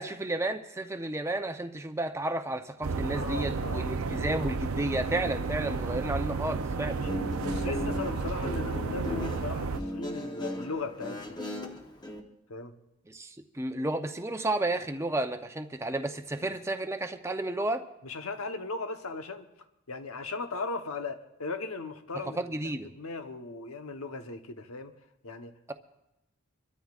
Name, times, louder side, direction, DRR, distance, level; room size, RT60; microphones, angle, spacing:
voice 1, 0.0-7.0 13.1-17.8 22.4-22.9, right 2 dB, 15° right, 7 dB, 0.6 m, -32 dB
sound 1, 2.8-9.8, right 4 dB, 80° right, 0.6 m, -32 dB
voice 2, 3.2-4.3 6.9-7.2 7.4-11.5 12.5-12.7 18.0-19.5 19.9-24.9 25.2-25.7, left 3 dB, 85° left, 7 dB, 1.0 m, -38 dB
Guitar, 6.9-12.2, left 1 dB, 20° left, 1.0 m, -37 dB
26.0 x 13.0 x 2.5 m, 0.90 s
head